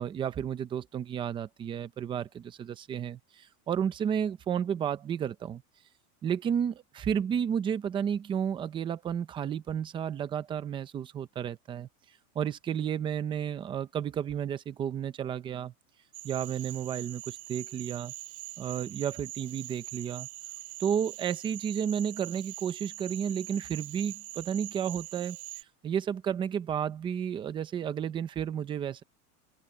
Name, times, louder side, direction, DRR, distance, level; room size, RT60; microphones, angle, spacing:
voice 1, 0.0-5.6 6.2-11.9 12.3-15.7 16.2-18.1 18.6-20.3 20.8-25.4 25.8-29.0, right 8 dB, 10° right, 0.6 m, -32 dB
Cricket / Frog, 16.1-25.6, right 17 dB, 70° right, 3.2 m, -43 dB
open air
supercardioid pair, 165°, 45 cm